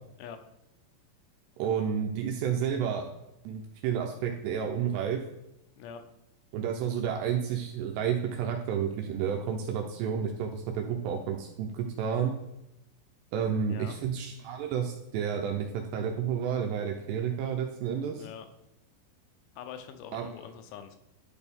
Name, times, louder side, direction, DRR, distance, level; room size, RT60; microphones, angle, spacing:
voice 1, 1.6-3.1 3.5-5.2 6.5-12.3 13.3-18.3 20.1-20.3, right 8 dB, 80° right, 3 dB, 2.5 m, -31 dB
voice 2, 19.6-21.0, left 8 dB, 90° left, 8 dB, 3.1 m, -44 dB
11.5 x 4.5 x 3.5 m, 0.87 s
omnidirectional pair, 5.4 m